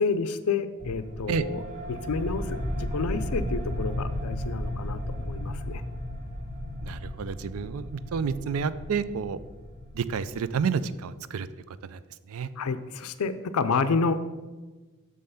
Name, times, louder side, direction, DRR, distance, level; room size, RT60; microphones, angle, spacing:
voice 1, 0.0-1.6 1.9-5.8 12.6-14.2, left 4 dB, 85° left, 12 dB, 0.5 m, -29 dB
sound 1, 0.8-11.0, left 1 dB, 35° right, 1.7 m, -34 dB
voice 2, 6.8-9.4 9.9-11.5 11.8-12.0 12.3-12.5, right 6 dB, 75° right, 15 dB, 0.4 m, -30 dB
6.4 x 5.5 x 5.6 m, 1.2 s
head